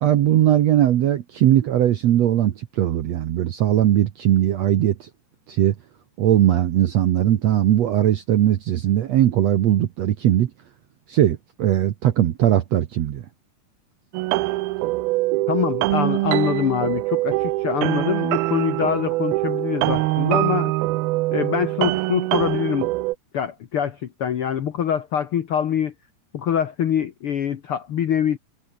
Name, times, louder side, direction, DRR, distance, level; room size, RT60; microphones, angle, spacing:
voice 1, 0.0-5.1 5.5-5.7 6.2-10.5 11.1-13.2, right 12 dB, 70° right, 1.6 m, -19 dB
sound 1, 14.1-23.2, right 19 dB, 85° right, 2.5 m, -23 dB
voice 2, 15.5-20.7 21.3-22.9 23.3-25.9 26.3-28.4, left 9 dB, 85° left, 1.2 m, -24 dB
omnidirectional pair, 4.4 m